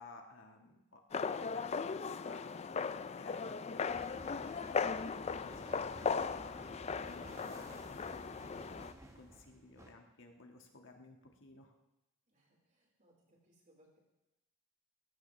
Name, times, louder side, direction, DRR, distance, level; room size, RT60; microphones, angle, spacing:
voice 1, 0.0-1.6 1.9-5.8 6.2-11.7, left 3 dB, 60° left, 3 dB, 1.6 m, -57 dB
sound 1, 1.1-8.9, left 5 dB, 30° left, 0.4 m, -38 dB
sound 2, 3.9-9.9, right 1 dB, 15° right, 1.5 m, -54 dB
voice 2, 12.3-14.0, right 1 dB, 35° right, -2 dB, 4.4 m, -69 dB
19.5 x 16.0 x 3.3 m, 0.95 s
head